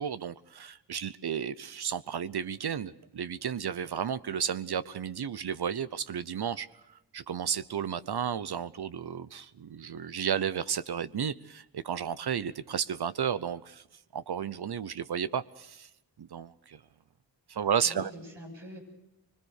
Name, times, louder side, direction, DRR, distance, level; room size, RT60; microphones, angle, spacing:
voice 1, 0.0-13.8 14.1-15.9 16.2-16.8 17.5-18.1, right 8 dB, 65° right, 0.8 m, -33 dB
voice 2, 17.5-18.8, equal, 85° right, 7.6 m, -45 dB
25.0 x 22.0 x 6.6 m
cardioid pair, 45°, 43 cm